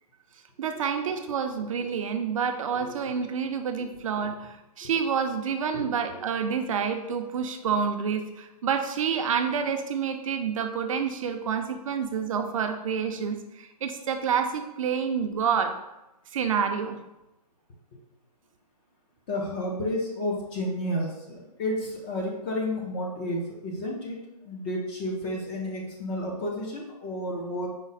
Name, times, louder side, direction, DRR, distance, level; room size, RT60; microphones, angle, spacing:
voice 1, 0.6-15.8 16.3-17.0, right 6 dB, 55° right, 6 dB, 0.5 m, -28 dB
voice 2, 19.3-24.2 24.4-27.7, left 1 dB, 15° left, -1 dB, 0.4 m, -31 dB
5.0 x 2.0 x 4.0 m, 0.92 s
hypercardioid pair, 160°, 20 cm